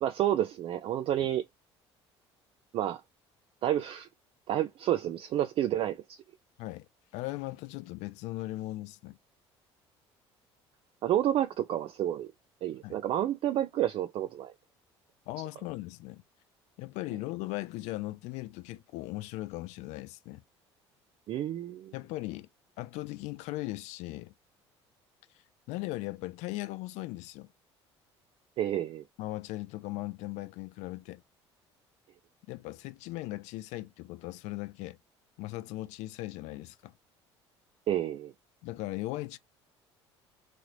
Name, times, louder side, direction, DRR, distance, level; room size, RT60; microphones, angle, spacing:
voice 1, 0.0-1.5 2.7-3.0 3.6-4.1 4.5-6.2 11.0-12.3 12.6-14.5 21.3-21.9 28.6-29.0 37.9-38.3, right 11 dB, 40° right, 0.4 m, -30 dB
voice 2, 7.1-9.2 12.8-13.0 15.3-16.2 16.8-20.4 21.9-22.5 22.8-24.3 25.7-27.5 29.2-31.2 32.5-35.0 35.4-36.9 38.6-39.4, left 18 dB, 55° left, 0.4 m, -38 dB
3.1 x 2.8 x 2.7 m
figure-of-eight pair, 55°, 14 cm